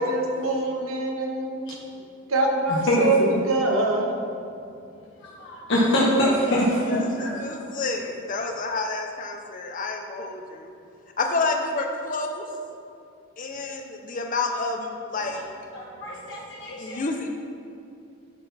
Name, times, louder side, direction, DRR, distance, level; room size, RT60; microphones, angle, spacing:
voice 1, 0.1-1.6 2.3-3.2 3.5-4.1, right 2 dB, 70° right, 1 dB, 1.1 m, -24 dB
voice 2, 5.4-7.7 15.7-17.0, equal, 55° left, -6 dB, 1.1 m, -24 dB
voice 3, 6.9-10.7 11.2-12.4 13.4-15.4 16.8-17.3, left 3 dB, 35° left, 3 dB, 0.6 m, -29 dB
12.0 x 4.0 x 4.1 m, 2.6 s
head